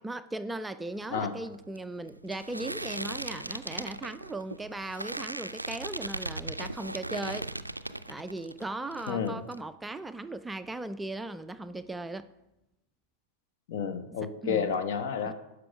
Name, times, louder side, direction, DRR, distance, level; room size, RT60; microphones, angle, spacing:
voice 1, 0.0-7.5 8.1-12.3 14.2-14.7 15.3-15.4, right 2 dB, 10° right, 11 dB, 0.3 m, -38 dB
sound 1, 0.9-8.6 8.9-9.6, right 1 dB, 85° right, 0.3 m, -38 dB
voice 2, 9.1-9.4 13.7-15.3, left 6 dB, 55° left, 9 dB, 0.9 m, -30 dB
11.0 x 4.9 x 6.0 m, 0.97 s
figure-of-eight pair, 90°, 0 cm